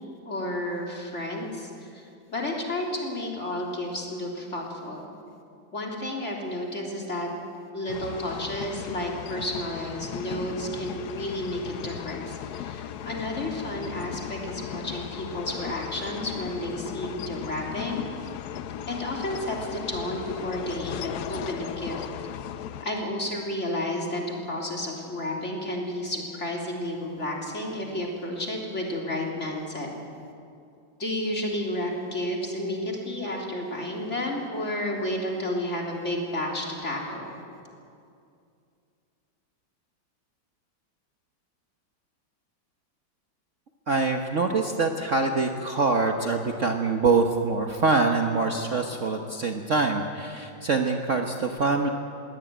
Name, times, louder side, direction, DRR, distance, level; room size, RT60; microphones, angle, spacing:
voice 1, 0.3-5.1 5.7-7.3 7.7-18.0 18.9-22.1 22.8-29.9 31.0-37.3, left 1 dB, 35° left, -1 dB, 3.7 m, -31 dB
sound 1, 7.9-22.9, left 10 dB, 65° left, 1.1 m, -37 dB
voice 2, 43.9-51.9, right 3 dB, 45° right, 3 dB, 1.3 m, -24 dB
21.5 x 17.5 x 9.3 m, 2.5 s
omnidirectional pair, 2.1 m